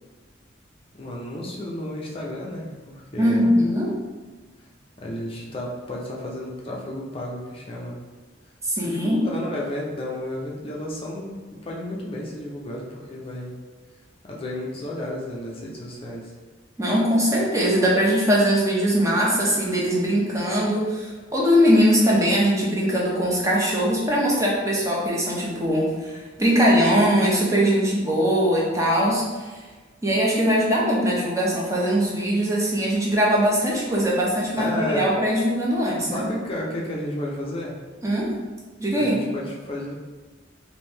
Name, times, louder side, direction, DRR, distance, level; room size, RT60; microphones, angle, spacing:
voice 1, 0.9-3.5 5.0-8.0 8.9-13.6 14.2-16.3 34.6-35.1 36.0-37.8 38.9-39.9, left 1 dB, 30° left, -3 dB, 0.5 m, -32 dB
voice 2, 3.2-3.9 8.6-9.2 16.8-29.2 30.0-36.3 38.0-38.3 38.8-39.2, equal, 15° right, -4 dB, 0.7 m, -21 dB
3.0 x 2.6 x 3.4 m, 1.4 s
head